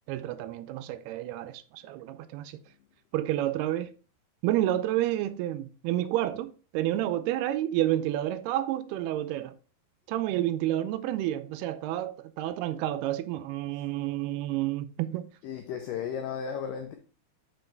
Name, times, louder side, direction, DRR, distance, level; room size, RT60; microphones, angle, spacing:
voice 1, 0.1-2.6 3.1-3.9 4.4-9.6 10.1-15.3, right 13 dB, 80° right, 2.5 m, -30 dB
voice 2, 15.4-17.0, left 7 dB, 90° left, 1.9 m, -34 dB
6.2 x 5.3 x 4.4 m
omnidirectional pair, 4.6 m